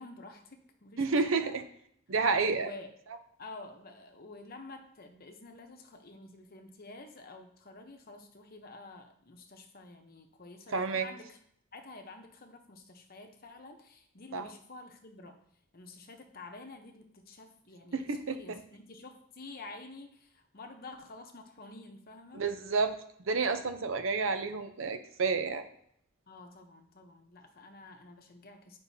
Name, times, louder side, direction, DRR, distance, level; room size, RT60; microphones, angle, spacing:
voice 1, 0.0-1.5 2.5-2.9 3.4-11.4 11.7-15.4 15.7-22.4 26.3-28.8, left 3 dB, 45° left, 4 dB, 0.9 m, -49 dB
voice 2, 1.0-1.6 2.1-2.7 10.7-11.1 14.3-14.5 17.9-18.6 22.3-23.0 23.3-25.6, right 4 dB, 65° right, 8 dB, 0.7 m, -30 dB
9.1 x 5.3 x 2.7 m, 0.69 s
head